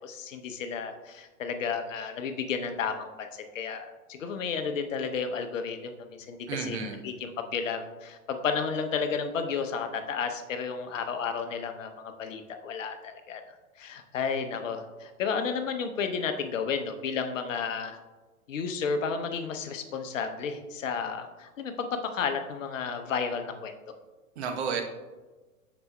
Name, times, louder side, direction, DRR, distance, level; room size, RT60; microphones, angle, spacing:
voice 1, 0.0-13.4 13.8-18.0 18.5-23.7, left 5 dB, 65° left, 7 dB, 0.8 m, -32 dB
voice 2, 6.5-7.0 24.4-24.8, right 6 dB, 50° right, 4 dB, 0.9 m, -31 dB
7.8 x 6.0 x 2.2 m, 1.2 s
figure-of-eight pair, 100°, 42 cm